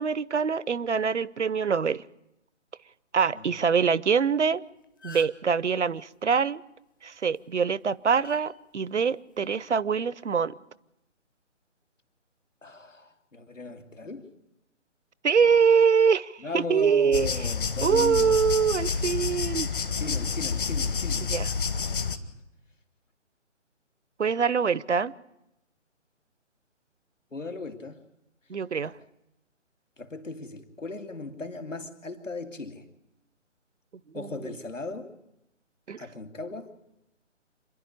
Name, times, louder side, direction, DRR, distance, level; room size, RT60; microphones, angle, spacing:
voice 1, 0.0-2.0 3.1-4.6 5.0-6.6 7.0-10.5 15.2-17.3 17.8-19.7 21.3-21.5 24.2-25.1 28.5-28.9 34.1-34.3 35.9-36.0, right 6 dB, 65° right, 0.7 m, -24 dB
sound 1, 4.5-4.6 4.8-5.5 7.2-7.4 8.2-8.4 9.4-9.7, left 3 dB, 15° left, 0.7 m, -45 dB
voice 2, 12.6-14.3 16.4-18.4 19.9-21.3 27.3-28.0 28.8-29.0 30.0-32.9 34.1-35.1 36.0-36.7, left 3 dB, 80° left, 2.4 m, -37 dB
sound 2, 17.1-22.2, left 5 dB, 45° left, 1.4 m, -29 dB
27.5 x 11.0 x 9.9 m
figure-of-eight pair, 145°, 37 cm